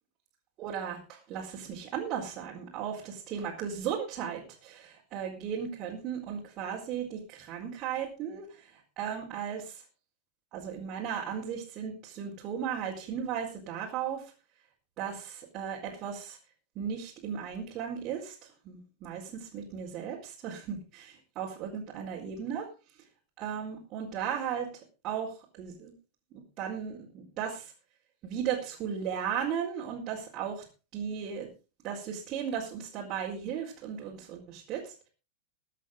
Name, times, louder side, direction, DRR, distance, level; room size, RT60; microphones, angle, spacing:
voice 1, 0.6-4.7 5.1-8.7 9.0-9.8 10.5-14.2 15.0-16.4 16.7-18.4 18.6-22.7 23.4-24.7 25.0-25.9 26.3-27.7 28.2-30.6 30.9-31.5 31.8-35.1, right 8 dB, 35° right, -4 dB, 4.3 m, -36 dB
23.0 x 8.4 x 3.8 m, 0.33 s
figure-of-eight pair, 90°, 0 cm